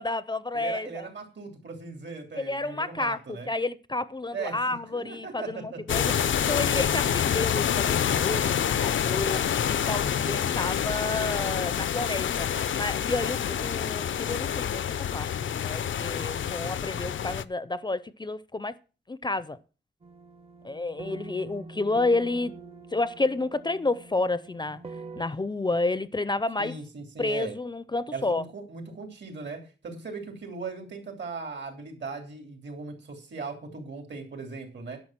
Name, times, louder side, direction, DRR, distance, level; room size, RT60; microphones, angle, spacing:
voice 1, 0.0-1.1 2.3-6.0 6.5-9.4 9.7-14.8 15.1-15.3 15.6-18.7 19.1-19.6 20.6-22.5 22.9-24.8 25.2-26.7 27.2-28.4, left 2 dB, 25° left, 0.4 m, -30 dB
voice 2, 0.5-3.5 4.3-6.2 26.6-27.5 28.1-35.0, right 4 dB, 70° right, 3.1 m, -38 dB
sound 1, 5.9-17.4, left 9 dB, 85° left, 0.5 m, -27 dB
sound 2, 20.0-25.2, right 3 dB, 30° right, 0.6 m, -44 dB
10.5 x 6.3 x 7.4 m
wide cardioid pair, 165°, 19 cm